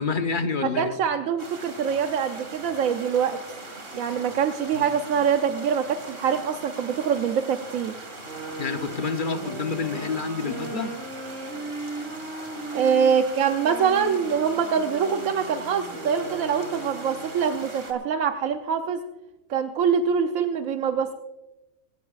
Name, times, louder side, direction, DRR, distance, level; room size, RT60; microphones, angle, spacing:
voice 1, 0.0-0.9 4.7-4.9 8.6-10.9, left 5 dB, 45° left, 7 dB, 1.0 m, -28 dB
voice 2, 0.6-3.4 3.9-7.9 12.7-19.0 19.5-21.1, right 7 dB, 90° right, 7 dB, 1.2 m, -24 dB
sound 1, 1.4-17.9, right 2 dB, 45° right, 2.2 m, -41 dB
sound 2, 8.2-17.5, right 2 dB, 70° right, 4.1 m, -37 dB
19.5 x 17.5 x 2.4 m, 1.0 s
omnidirectional pair, 1.4 m